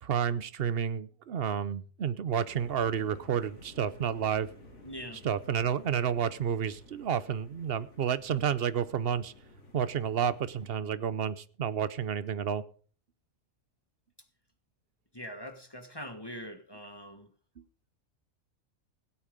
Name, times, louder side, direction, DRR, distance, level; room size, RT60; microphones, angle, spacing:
voice 1, 0.0-4.5 5.2-9.3 9.7-12.6, right 8 dB, 50° right, 15 dB, 0.9 m, -30 dB
sound 1, 2.5-10.7, left 1 dB, 60° left, 4.0 m, -54 dB
voice 2, 4.8-5.2 15.1-17.3, equal, 20° left, 8 dB, 1.3 m, -43 dB
17.0 x 8.7 x 5.1 m, 0.40 s
omnidirectional pair, 1.4 m